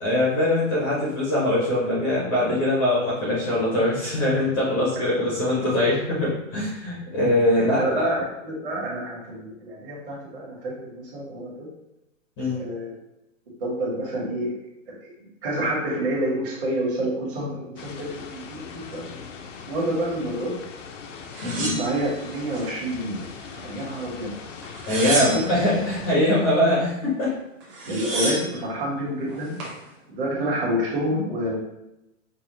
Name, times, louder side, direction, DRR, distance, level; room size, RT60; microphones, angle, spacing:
voice 1, 0.0-8.2 12.4-12.6 21.4-21.7 24.9-27.4, left 1 dB, 20° left, -6 dB, 0.6 m, -22 dB
voice 2, 7.6-11.7 12.5-12.9 13.6-14.6 15.0-15.1 15.4-19.0 19.7-20.5 21.4-23.2 23.6-24.3 25.1-25.5 27.8-29.5 30.1-31.5, right 1 dB, 40° right, -4 dB, 1.5 m, -28 dB
sound 1, 17.8-26.2, left 5 dB, 65° left, 0.6 m, -40 dB
sound 2, 21.3-22.7 23.1-23.9 24.6-25.7 27.3-27.4 27.6-28.6 29.3-29.8, right 2 dB, 25° right, 1.0 m, -30 dB
5.4 x 2.3 x 3.0 m, 0.90 s
hypercardioid pair, 160°, 41 cm